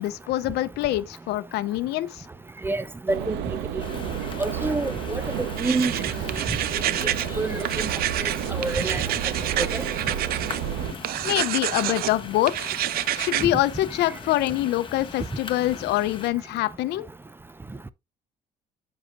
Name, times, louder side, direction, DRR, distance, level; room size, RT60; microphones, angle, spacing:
voice 1, 0.0-2.3 11.2-12.7 13.1-17.1, left 15 dB, 80° left, 0.6 m, -25 dB
voice 2, 2.6-3.4 3.7-3.8 4.4-6.0 7.4-7.9 8.2-9.0 9.7-9.8, right 2 dB, 15° right, 0.4 m, -28 dB
sound 1, 3.1-10.9, right 9 dB, 85° right, 0.9 m, -31 dB
sound 2, 3.8-16.3, left 5 dB, 30° left, 1.0 m, -40 dB
sound 3, 5.6-7.3 7.6-10.6 11.0-12.1 12.5-13.5, right 13 dB, 65° right, 0.5 m, -28 dB
7.7 x 6.4 x 2.5 m
cardioid pair, 110°, 17 cm